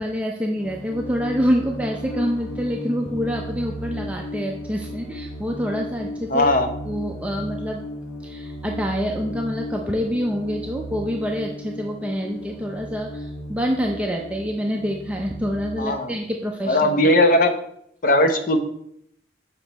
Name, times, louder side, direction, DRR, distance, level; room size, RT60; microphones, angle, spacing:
voice 1, 0.0-6.5 6.8-7.8 8.2-17.1, equal, 5° right, 0 dB, 0.5 m, -26 dB
sound 1, 0.6-15.8, equal, 65° left, 2.2 m, -35 dB
voice 2, 6.3-6.7 15.8-16.1 16.7-17.5 18.0-18.6, left 1 dB, 45° left, 6 dB, 0.9 m, -18 dB
7.3 x 5.9 x 4.1 m, 0.74 s
head